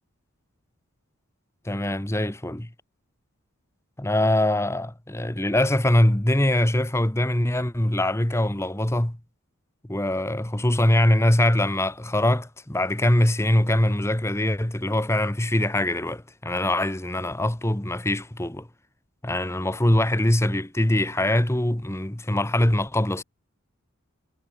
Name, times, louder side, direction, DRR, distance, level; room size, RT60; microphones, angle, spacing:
voice 1, 1.6-2.7 4.0-9.2 9.9-18.7 19.2-23.2, left 1 dB, 10° left, 1.0 m, -23 dB
head